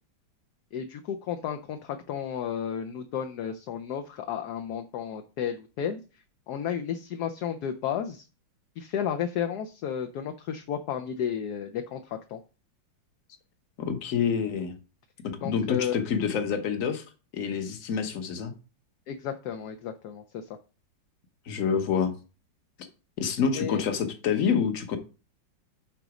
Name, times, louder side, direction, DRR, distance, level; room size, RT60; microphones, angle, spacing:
voice 1, 0.7-6.0 6.5-8.3 8.8-12.4 15.4-15.9 19.1-20.5 23.5-23.8, left 8 dB, 65° left, 7 dB, 1.1 m, -32 dB
voice 2, 13.8-14.7 15.2-17.0 17.3-18.5 21.5-22.1 23.2-25.0, left 6 dB, 50° left, 7 dB, 1.3 m, -27 dB
9.2 x 4.0 x 4.8 m, 0.33 s
omnidirectional pair, 2.1 m